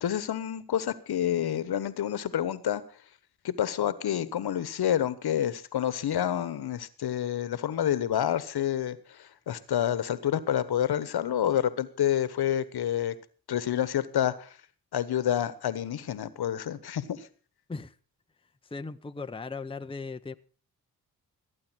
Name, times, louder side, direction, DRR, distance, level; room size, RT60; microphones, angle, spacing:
voice 1, 0.0-2.8 3.4-13.1 13.5-14.5 14.9-17.3, left 10 dB, 65° left, 1.3 m, -28 dB
voice 2, 18.7-20.3, left 4 dB, 15° left, 0.7 m, -37 dB
16.0 x 8.7 x 6.2 m
supercardioid pair, 50°, 41 cm